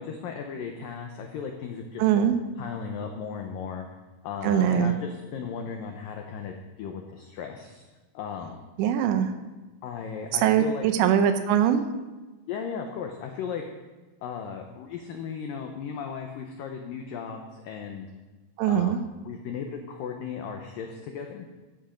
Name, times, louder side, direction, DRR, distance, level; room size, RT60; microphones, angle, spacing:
voice 1, 0.0-2.3 2.6-3.9 4.2-7.8 8.1-8.7 9.8-10.8 12.5-13.6 14.2-18.1 18.6-21.5, left 6 dB, 80° left, 3 dB, 2.0 m, -36 dB
voice 2, 2.0-2.4 4.4-4.9 8.8-9.3 10.3-11.8 18.6-19.0, right 9 dB, 80° right, 9 dB, 2.9 m, -22 dB
13.5 x 10.0 x 5.1 m, 1.2 s
omnidirectional pair, 5.3 m